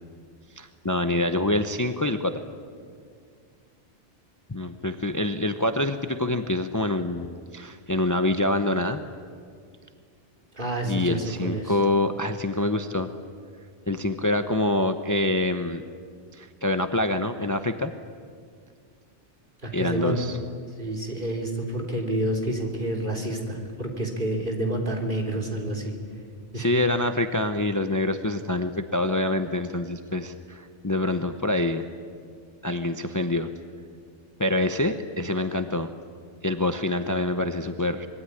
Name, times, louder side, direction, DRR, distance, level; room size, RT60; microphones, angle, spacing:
voice 1, 0.6-2.3 4.5-9.0 10.8-13.1 13.9-15.8 16.3-17.9 19.7-20.4 26.5-31.8 32.6-33.5 34.4-35.9 36.4-38.1, left 1 dB, 15° left, 8 dB, 0.9 m, -26 dB
voice 2, 10.5-11.7 19.6-20.1 20.8-26.0 26.5-26.7, right 1 dB, 45° right, 1 dB, 3.9 m, -29 dB
26.0 x 22.0 x 10.0 m, 2.1 s
omnidirectional pair, 1.2 m